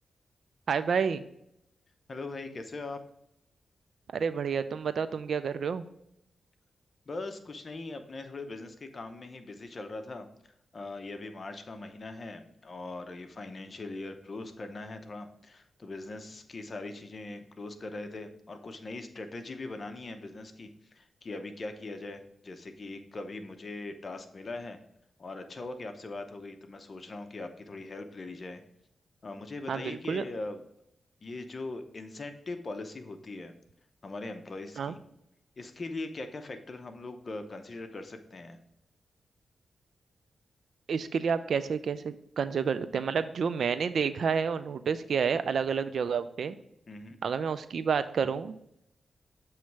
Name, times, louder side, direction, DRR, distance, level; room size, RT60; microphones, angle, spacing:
voice 1, 0.7-1.2 4.1-5.8 29.7-30.2 34.8-34.9 40.9-46.6 47.2-48.5, right 6 dB, 70° right, 13 dB, 0.4 m, -29 dB
voice 2, 2.1-3.0 7.1-10.3 10.7-24.8 25.2-28.6 29.2-30.6 31.2-33.5 34.0-35.0 35.6-38.6 46.9-47.2, left 2 dB, 45° left, 7 dB, 0.7 m, -41 dB
7.3 x 3.1 x 4.6 m, 0.77 s
cardioid pair, 75°, 0 cm